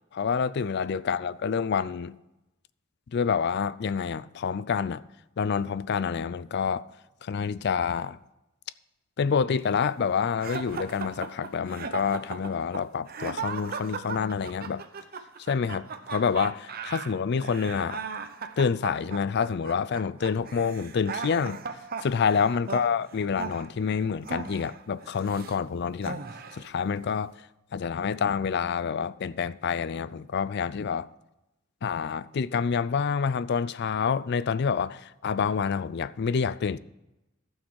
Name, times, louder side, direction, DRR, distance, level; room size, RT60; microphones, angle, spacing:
voice 1, 0.1-2.2 3.1-5.0 5.4-6.8 7.2-8.2 9.2-14.8 15.5-18.0 18.6-21.6 22.0-26.2 26.5-27.3 27.7-31.1 31.8-36.8, left 6 dB, 50° left, 0.4 m, -27 dB
sound 1, 10.4-25.6 26.0-26.7, right 5 dB, 45° right, 0.8 m, -37 dB
15.0 x 6.4 x 4.7 m
head